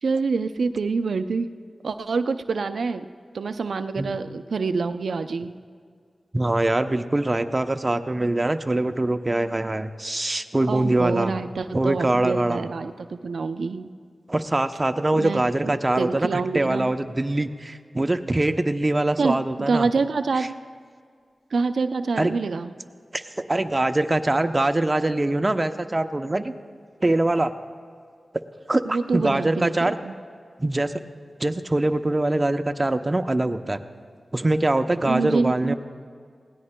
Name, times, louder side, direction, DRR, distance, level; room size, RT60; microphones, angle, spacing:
voice 1, 0.0-1.5 1.8-3.1 3.3-5.5 10.7-13.9 15.1-16.9 19.2-20.6 21.5-22.7 28.8-30.1 35.0-35.7, right 4 dB, 85° right, 10 dB, 0.4 m, -26 dB
voice 2, 6.3-11.4 11.7-12.7 14.3-16.3 16.5-19.9 22.2-22.3 23.1-26.5 27.0-27.5 28.7-30.0 30.6-30.9 31.4-33.8 34.3-35.7, right 2 dB, 30° right, 8 dB, 0.6 m, -23 dB
20.0 x 17.0 x 2.2 m, 2.1 s
cardioid pair, 55°, 0 cm